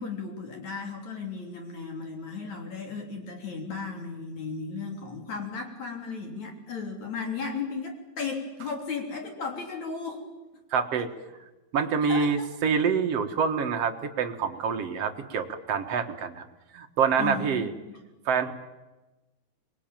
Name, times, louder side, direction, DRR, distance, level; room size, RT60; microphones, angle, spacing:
voice 1, 0.0-10.2 12.1-12.3 17.2-18.0, left 4 dB, 50° left, 3 dB, 4.4 m, -35 dB
voice 2, 10.7-11.1 11.7-16.4 16.7-17.7 18.3-18.5, right 6 dB, 55° right, 6 dB, 2.0 m, -26 dB
26.0 x 21.5 x 9.0 m, 1.1 s
omnidirectional pair, 4.4 m